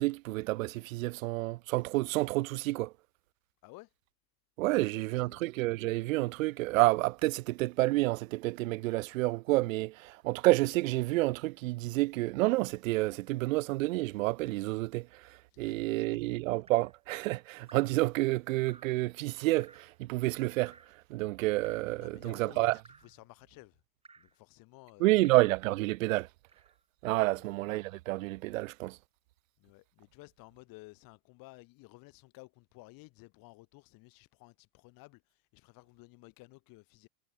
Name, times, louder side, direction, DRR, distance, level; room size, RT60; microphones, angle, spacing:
voice 1, 0.0-2.9 4.6-15.1 15.6-20.7 21.1-22.8 25.0-26.3 27.0-29.0, right 20 dB, 55° right, 0.8 m, -29 dB
voice 2, 4.7-5.4 15.5-16.2 22.0-23.8 24.2-25.4 27.2-27.5 29.6-37.1, left 23 dB, 45° left, 3.6 m, -55 dB
Drip, 16.7-17.0 17.7-18.0 18.7-19.0 19.6-20.0 20.7-21.0 21.6-22.0 22.8-23.2 24.0-24.4 25.2-25.6 26.5-26.8 27.7-27.9, right 4 dB, 10° right, 4.3 m, -58 dB
figure-of-eight pair, 90°, 48 cm